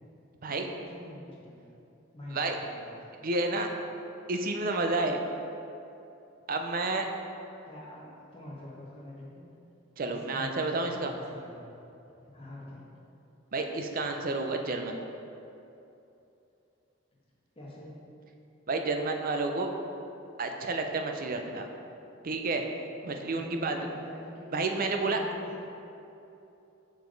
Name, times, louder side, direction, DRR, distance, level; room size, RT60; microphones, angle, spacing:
voice 1, 0.4-1.7 2.1-3.2 7.6-9.5 10.1-11.7 12.2-12.9 17.5-17.9 23.3-25.7, left 1 dB, 30° left, -6 dB, 1.3 m, -46 dB
voice 2, 3.2-3.7 4.3-5.2 6.5-7.1 10.0-11.1 13.5-15.0 18.7-19.7 20.4-21.7 22.2-22.6 23.0-23.8 24.5-25.2, right 3 dB, 45° right, 4 dB, 0.5 m, -30 dB
6.8 x 4.8 x 3.9 m, 2.8 s
head